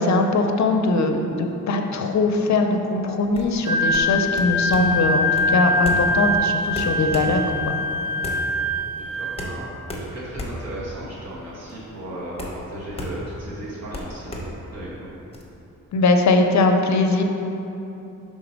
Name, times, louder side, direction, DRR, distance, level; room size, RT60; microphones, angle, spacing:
voice 1, 0.0-7.8 15.9-17.2, left 3 dB, 60° left, 4 dB, 0.5 m, -21 dB
sound 1, 3.2-15.4, equal, 20° left, 0.7 m, -35 dB
Wind instrument woodwind instrument, 3.6-9.5, left 1 dB, 75° right, 0.8 m, -23 dB
voice 2, 8.9-14.4 14.7-15.1, right 1 dB, 55° right, -7 dB, 1.4 m, -36 dB
5.8 x 3.7 x 5.1 m, 2.9 s
wide cardioid pair, 150°, 32 cm